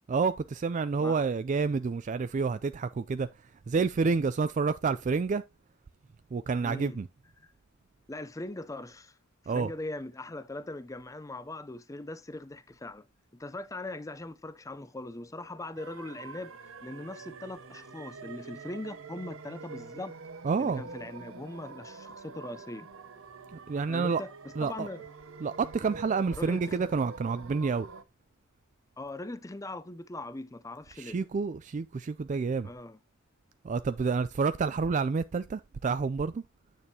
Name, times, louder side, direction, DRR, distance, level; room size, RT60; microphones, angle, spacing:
voice 1, 0.1-3.3 3.7-5.5 6.3-7.1 9.5-9.7 20.4-20.8 23.5-24.2 24.6-24.9 25.4-27.9 31.0-32.7 33.6-36.4, right 4 dB, 35° right, 0.3 m, -29 dB
voice 2, 6.6-7.0 7.4-7.5 8.1-9.2 9.5-13.1 13.3-20.1 20.6-22.9 23.9-25.0 26.4-26.9 29.0-31.2 32.6-33.0, left 2 dB, 15° left, 0.5 m, -40 dB
sound 1, 15.8-28.0, right 4 dB, 70° right, 0.8 m, -46 dB
8.8 x 6.6 x 2.8 m
head